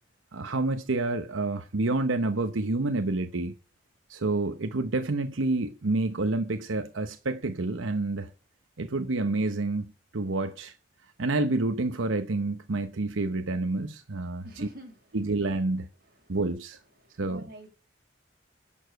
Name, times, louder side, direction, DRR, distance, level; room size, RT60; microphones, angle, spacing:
voice 1, 0.3-3.5 4.1-8.3 8.8-10.8 11.2-14.4 15.1-15.9 16.3-16.8 17.2-17.5, right 2 dB, 90° right, 0.9 m, -28 dB
voice 2, 14.4-15.0 16.2-16.4 17.0-17.7, equal, 50° right, 6.1 m, -45 dB
11.0 x 7.2 x 7.7 m
head